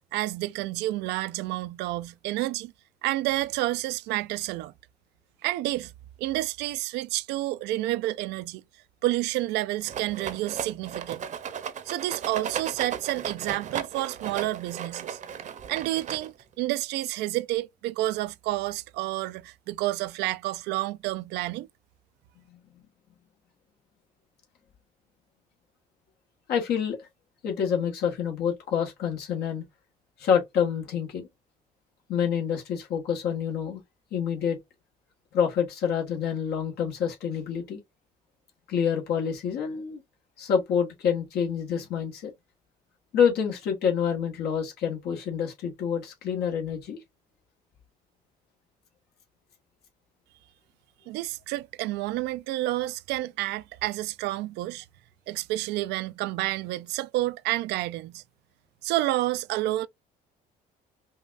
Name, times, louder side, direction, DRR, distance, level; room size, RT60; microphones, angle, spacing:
voice 1, 0.1-2.7 3.0-4.7 5.4-5.9 6.2-8.6 9.0-11.2 11.9-15.2 15.7-21.7 51.1-54.8 55.3-58.2 58.8-59.9, right 17 dB, 85° right, 0.4 m, -29 dB
Rattle, 9.9-16.5, right 8 dB, 45° right, 0.7 m, -36 dB
voice 2, 26.5-27.1 27.4-29.6 30.2-31.3 32.1-33.8 34.1-34.6 35.3-37.8 38.7-40.0 40.4-42.3 43.1-47.0, left 7 dB, 70° left, 1.5 m, -27 dB
5.4 x 2.3 x 2.5 m
cardioid pair, 110°, 17 cm